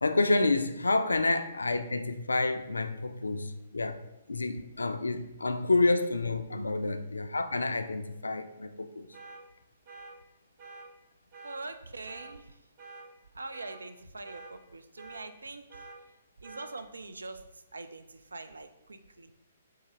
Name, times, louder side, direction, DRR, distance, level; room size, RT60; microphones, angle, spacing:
voice 1, 0.0-4.0 4.3-9.1, left 3 dB, 70° left, 10 dB, 0.3 m, -29 dB
sound 1, 9.1-9.4 9.9-10.1 10.6-10.9 11.3-11.6 12.0-12.3 12.8-13.0 13.5-13.8 14.2-14.5 15.0-15.2 15.7-16.0 16.4-16.7, right 3 dB, 30° right, 0.7 m, -47 dB
voice 2, 11.4-12.5 13.3-15.9 16.4-19.3, right 3 dB, 70° right, 9 dB, 0.3 m, -43 dB
3.9 x 2.7 x 3.7 m, 0.93 s
figure-of-eight pair, 125°, 0 cm